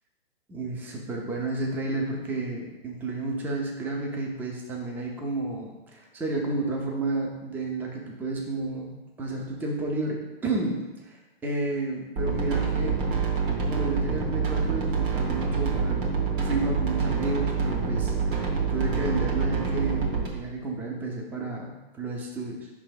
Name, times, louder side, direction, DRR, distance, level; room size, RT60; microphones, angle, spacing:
voice 1, 0.5-13.0 13.6-16.0 16.4-22.7, right 2 dB, 5° right, 0 dB, 0.5 m, -31 dB
sound 1, 12.2-20.3, right 5 dB, 55° right, 1.5 m, -26 dB
5.5 x 3.4 x 5.1 m, 1.1 s
hypercardioid pair, 135°, 31 cm